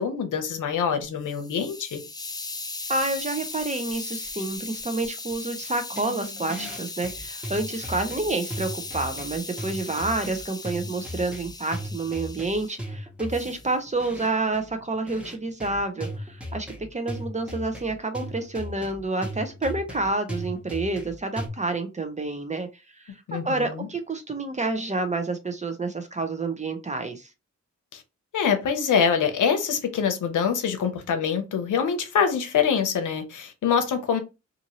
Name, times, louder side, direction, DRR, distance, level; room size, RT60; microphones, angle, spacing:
voice 1, 0.0-2.0 23.3-23.9 27.9-28.0 28.3-34.2, left 7 dB, 85° left, 0.7 m, -25 dB
Hiss, 1.0-12.8 13.3-13.7, left 3 dB, 15° left, 0.4 m, -37 dB
voice 2, 2.9-22.7 23.0-23.1 23.3-27.3, right 2 dB, 25° right, 0.7 m, -29 dB
sound 1, 5.9-21.5, equal, 5° right, 1.0 m, -37 dB
2.7 x 2.5 x 2.9 m
cardioid pair, 80°, 30 cm